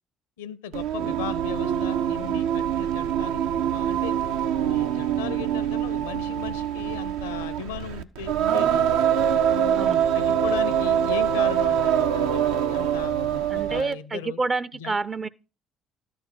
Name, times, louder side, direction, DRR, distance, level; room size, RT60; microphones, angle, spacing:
voice 1, 0.4-4.2 4.5-8.9 9.5-14.4 14.7-15.0, left 8 dB, 80° left, 0.6 m, -37 dB
Singing, 0.7-13.9, right 9 dB, 75° right, 0.6 m, -24 dB
voice 2, 13.5-15.3, right 3 dB, 35° right, 0.5 m, -28 dB
13.0 x 4.3 x 7.7 m
hypercardioid pair, 55°, 0 cm